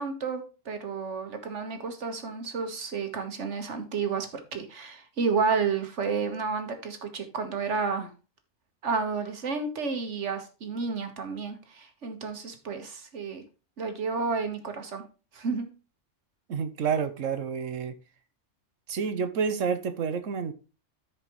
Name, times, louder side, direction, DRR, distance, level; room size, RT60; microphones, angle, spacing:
voice 1, 0.0-8.1 8.8-13.4 13.8-15.0 15.3-15.7, right 5 dB, 70° right, 1.7 m, -31 dB
voice 2, 16.5-17.9 18.9-20.5, right 6 dB, 90° right, 1.3 m, -29 dB
14.0 x 5.0 x 3.1 m
omnidirectional pair, 1.3 m